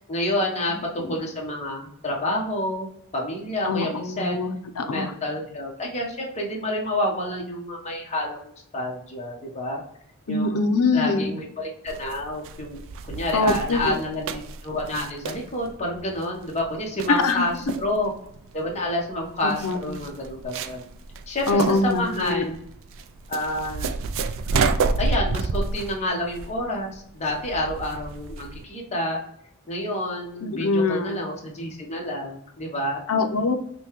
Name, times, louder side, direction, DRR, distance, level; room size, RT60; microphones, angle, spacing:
voice 1, 0.0-4.4 4.8-8.4 8.7-9.8 10.3-10.6 10.9-12.8 13.1-18.1 18.5-20.8 21.3-22.6 23.3-23.9 25.0-29.2 29.7-33.0, left 1 dB, 30° left, -1 dB, 1.0 m, -29 dB
voice 2, 3.6-5.1 10.3-11.3 13.3-14.0 17.1-17.5 19.4-19.9 21.5-22.4 30.4-31.2 33.1-33.6, left 3 dB, 80° left, 7 dB, 0.6 m, -23 dB
sound 1, 11.9-28.6, right 4 dB, 60° right, 0.3 m, -30 dB
5.4 x 2.2 x 3.0 m, 0.71 s
head